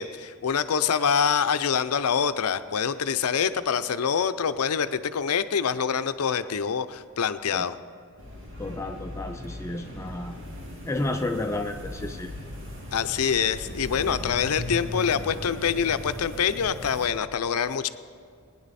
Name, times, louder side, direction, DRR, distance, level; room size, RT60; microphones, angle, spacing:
voice 1, 0.0-7.8 12.9-17.9, left 7 dB, 90° left, 12 dB, 0.5 m, -25 dB
sound 1, 8.2-17.1, left 1 dB, 55° right, 2.4 m, -38 dB
voice 2, 8.6-10.4 10.9-12.3, left 2 dB, 15° left, 5 dB, 0.4 m, -31 dB
20.0 x 9.9 x 4.1 m, 2.3 s
head